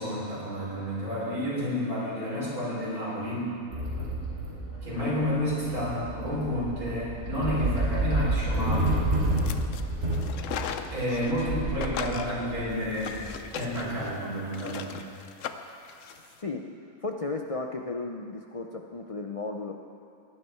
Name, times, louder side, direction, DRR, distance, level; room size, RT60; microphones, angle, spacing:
voice 1, 0.0-3.5 4.8-8.9 10.9-13.2 13.5-15.0, equal, 80° right, -7 dB, 4.7 m, -30 dB
sound 1, 3.7-13.9, right 1 dB, 50° right, 3.0 m, -30 dB
sound 2, 9.3-9.8 10.1-11.5 11.8-16.3, left 7 dB, 65° left, 1.0 m, -38 dB
voice 2, 17.0-19.7, left 3 dB, 50° left, 2 dB, 0.4 m, -34 dB
17.5 x 11.0 x 4.6 m, 2.4 s
omnidirectional pair, 1.5 m